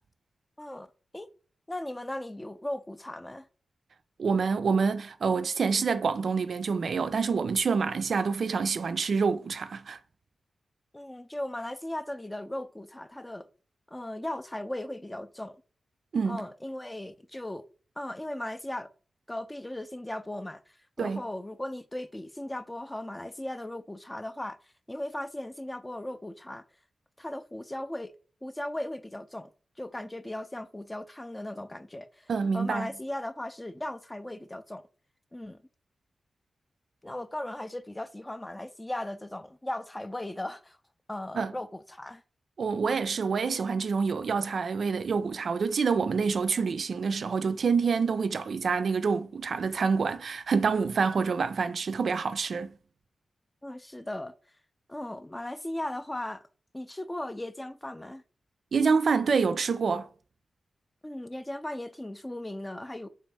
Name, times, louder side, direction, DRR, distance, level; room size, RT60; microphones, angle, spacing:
voice 1, 0.6-0.9 1.1-1.3 1.7-3.5 10.9-13.4 13.9-15.6 16.3-17.6 18.0-18.9 19.3-20.6 21.0-24.6 24.9-26.6 27.2-28.1 28.4-29.5 29.8-34.8 35.3-35.6 37.0-40.8 41.1-42.2 53.6-54.3 54.9-56.4 56.7-58.2 61.0-63.1, left 1 dB, 15° left, 0.4 m, -37 dB
voice 2, 4.2-10.0 16.1-16.4 21.0-21.2 32.3-32.9 41.4-41.5 42.6-52.7 58.7-60.1, right 5 dB, 70° right, 0.3 m, -27 dB
3.3 x 2.8 x 3.2 m
cardioid pair, 55°, 0 cm